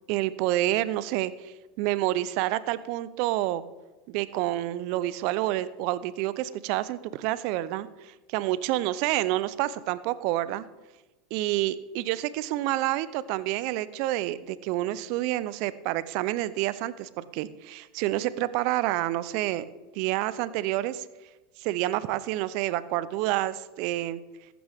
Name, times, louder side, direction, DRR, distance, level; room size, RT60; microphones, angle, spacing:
voice 1, 0.1-3.6 4.1-10.7 11.3-19.6 19.9-21.0 21.6-24.2, right 15 dB, 60° right, 17 dB, 0.6 m, -28 dB
15.0 x 12.0 x 3.5 m, 1.1 s
hypercardioid pair, 85°, 0 cm